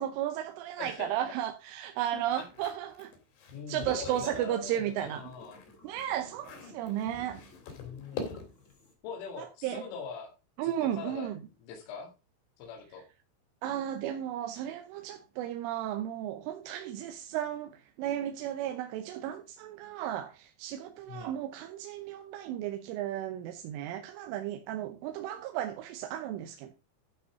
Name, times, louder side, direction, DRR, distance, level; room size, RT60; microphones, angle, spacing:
voice 1, 0.0-3.1 3.7-5.2 5.8-7.4 9.4-9.8 10.6-11.4 13.6-26.7, right 11 dB, 80° right, 3.2 m, -34 dB
voice 2, 0.8-1.3 2.1-2.4 3.5-5.6 7.8-8.4 9.0-10.3 10.6-11.3 11.7-12.1 12.6-13.0 21.1-21.3, left 5 dB, 75° left, 4.5 m, -42 dB
sound 1, 2.2-4.5 4.9-8.7, left 4 dB, 55° left, 4.3 m, -44 dB
sound 2, 3.8-8.9, left 4 dB, 25° left, 1.6 m, -55 dB
12.5 x 5.5 x 4.9 m
omnidirectional pair, 5.9 m